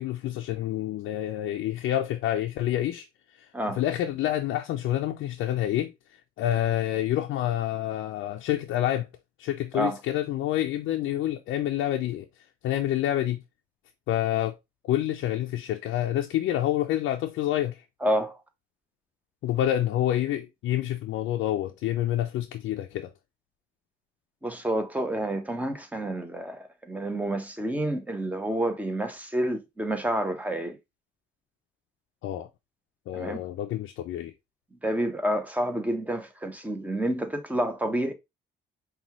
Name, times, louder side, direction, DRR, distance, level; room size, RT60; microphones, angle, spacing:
voice 1, 0.0-3.1 3.3-9.1 9.4-13.4 14.1-14.6 14.9-17.8 19.4-23.1 32.2-32.5 33.1-34.3, left 12 dB, 80° left, 0.5 m, -28 dB
voice 2, 18.0-18.4 24.4-30.8 33.1-33.4 34.8-38.1, right 1 dB, 5° right, 0.9 m, -29 dB
5.2 x 2.3 x 3.0 m
cardioid pair, 90°, 20 cm